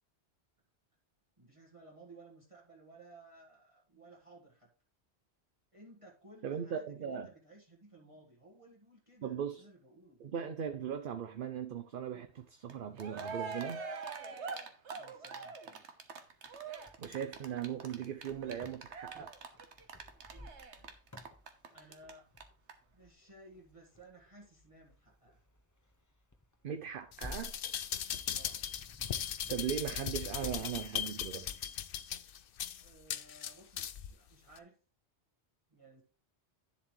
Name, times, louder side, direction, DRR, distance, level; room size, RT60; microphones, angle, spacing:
voice 1, 1.4-4.7 5.7-10.2 14.9-15.8 20.3-20.6 21.7-22.3 22.9-25.4 28.3-28.6 32.8-34.8 35.7-36.0, right 2 dB, 30° right, 1.6 m, -58 dB
voice 2, 6.4-7.3 9.2-9.6 10.2-13.8 17.0-19.3 26.6-27.5 29.5-31.6, right 8 dB, 55° right, 0.8 m, -38 dB
Cheering, 12.7-12.8 13.0-22.1 22.4-22.5 22.7-22.8, right 5 dB, 85° right, 1.4 m, -43 dB
Wind, 16.5-30.6, left 1 dB, 15° left, 1.0 m, -54 dB
sound 1, 27.1-34.1 34.6-34.7, left 9 dB, 60° left, 0.7 m, -38 dB
10.0 x 7.3 x 3.1 m
omnidirectional pair, 1.1 m